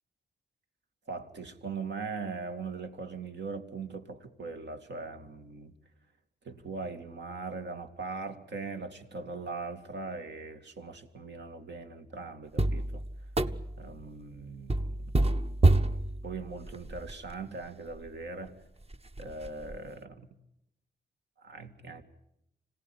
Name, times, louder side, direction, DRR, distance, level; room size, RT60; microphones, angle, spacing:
voice 1, 1.1-5.7 6.4-13.0 13.8-15.1 16.2-18.6 19.2-20.3 21.4-22.0, right 4 dB, 75° right, 6 dB, 2.4 m, -40 dB
sound 1, 12.6-13.9 14.7-17.3 17.9-18.0 18.5-18.6 18.9-19.8, right 2 dB, 35° right, 1.1 m, -28 dB
26.0 x 18.0 x 9.9 m, 0.81 s
cardioid pair, 75°, 18 cm